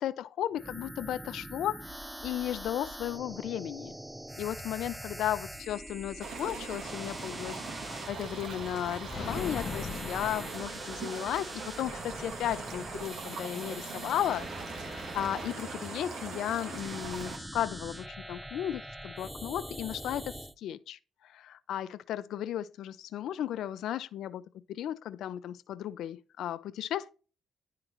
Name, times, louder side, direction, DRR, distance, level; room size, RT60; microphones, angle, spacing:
voice 1, 0.0-4.0 4.4-24.4 24.7-27.1, left 11 dB, 80° left, 0.5 m, -35 dB
sound 1, 0.6-20.5, right 1 dB, 5° right, 0.4 m, -43 dB
sound 2, 6.2-17.4, right 5 dB, 75° right, 1.4 m, -42 dB
sound 3, 9.1-11.3, left 5 dB, 45° left, 0.8 m, -39 dB
11.0 x 3.8 x 3.0 m
cardioid pair, 90°, 0 cm